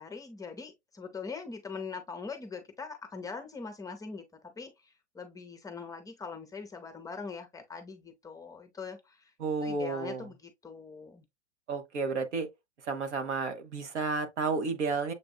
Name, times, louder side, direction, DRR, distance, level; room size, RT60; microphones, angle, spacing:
voice 1, 0.0-4.2 4.6-9.3 9.6-11.2, left 5 dB, 10° left, 0.7 m, -42 dB
voice 2, 9.4-10.3 11.7-12.5 12.8-15.1, right 4 dB, 75° right, 1.2 m, -32 dB
7.1 x 2.5 x 2.3 m
hypercardioid pair, 110°, 35 cm